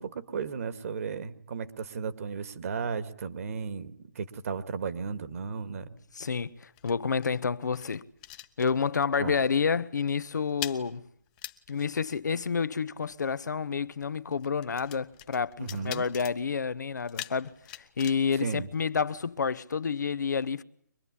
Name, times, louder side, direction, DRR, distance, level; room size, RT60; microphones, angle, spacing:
voice 1, 0.0-5.9 9.2-9.4 15.6-16.1 18.4-18.7, right 5 dB, 50° right, 2.1 m, -35 dB
sound 1, 5.8-9.2 9.4-9.7 10.0-19.4, left 14 dB, 25° left, 1.1 m, -45 dB
voice 2, 6.1-8.0 8.6-11.0 11.7-17.5 18.0-20.6, left 6 dB, 70° left, 1.0 m, -29 dB
25.0 x 20.5 x 9.9 m
figure-of-eight pair, 150°, 10 cm